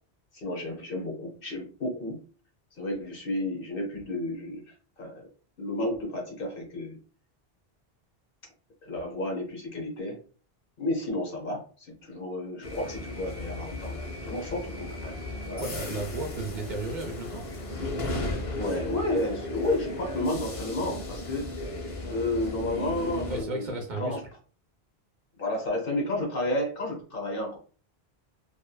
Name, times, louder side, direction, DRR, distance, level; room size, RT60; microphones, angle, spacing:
voice 1, 0.3-2.2 2.8-5.3 5.6-7.0 8.8-10.2 10.8-15.6 18.6-21.5 22.1-24.2 25.4-27.6, left 1 dB, 65° left, 1 dB, 1.0 m, -32 dB
sound 1, 12.6-23.4, left 2 dB, 40° left, 0.6 m, -35 dB
voice 2, 15.6-17.5 23.3-24.2, right 2 dB, 55° right, 3 dB, 0.6 m, -34 dB
2.7 x 2.3 x 2.3 m, 0.40 s
omnidirectional pair, 1.0 m